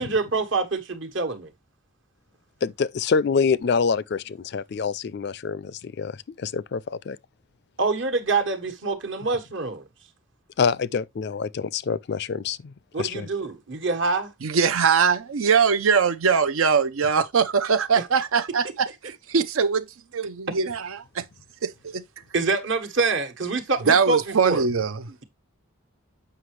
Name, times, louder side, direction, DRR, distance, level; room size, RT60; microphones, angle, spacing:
voice 1, 0.0-1.5 7.8-9.8 12.9-14.3 22.3-24.7, right 3 dB, 60° right, 1.3 m, -25 dB
voice 2, 2.6-6.1 6.4-7.2 10.6-12.7 13.0-13.3, left 5 dB, 50° left, 0.4 m, -26 dB
voice 3, 14.4-19.9 20.1-21.2 21.6-22.0 23.9-25.2, right 6 dB, 75° right, 0.6 m, -22 dB
7.8 x 5.8 x 3.2 m
head